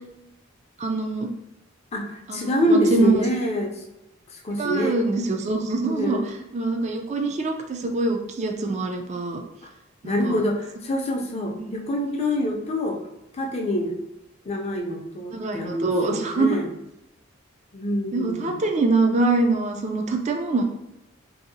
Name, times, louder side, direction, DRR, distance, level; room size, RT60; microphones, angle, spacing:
voice 1, 0.8-1.3 2.3-3.3 4.6-6.2 6.5-9.4 10.0-10.4 11.6-11.7 15.3-16.6 18.1-20.6, right 3 dB, 35° right, 3 dB, 0.3 m, -24 dB
voice 2, 1.9-3.8 4.3-5.1 5.8-6.2 9.6-9.7 10.0-13.0 13.3-13.9 14.4-16.7 17.7-18.6, left 1 dB, 30° left, 1 dB, 0.4 m, -26 dB
2.8 x 2.7 x 2.6 m, 0.89 s
head